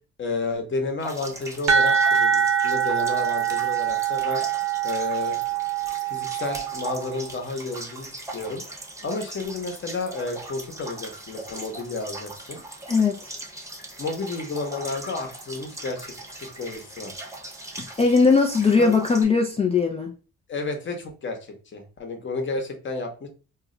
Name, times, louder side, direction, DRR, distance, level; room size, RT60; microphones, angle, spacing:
voice 1, 0.2-4.4 4.8-5.4 6.0-8.6 9.0-12.6 14.0-17.3 18.8-18.9 20.5-23.3, left 3 dB, 40° left, 0.9 m, -31 dB
sound 1, 1.0-19.2, right 1 dB, 10° right, 0.7 m, -39 dB
sound 2, 1.7-7.3, right 8 dB, 65° right, 0.8 m, -24 dB
voice 2, 12.9-13.3 17.8-20.1, left 4 dB, 20° left, 0.3 m, -20 dB
2.4 x 2.0 x 3.7 m
cardioid pair, 90°, 30 cm